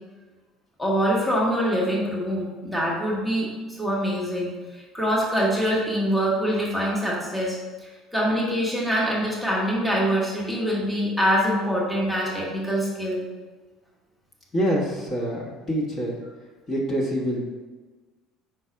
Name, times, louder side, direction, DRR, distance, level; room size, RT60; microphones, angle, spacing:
voice 1, 0.8-13.2, equal, ahead, -5 dB, 1.3 m, -24 dB
voice 2, 14.5-16.2 16.7-17.4, equal, 30° left, -3 dB, 1.3 m, -26 dB
5.0 x 3.9 x 5.7 m, 1.3 s
cardioid pair, 140°, 0 cm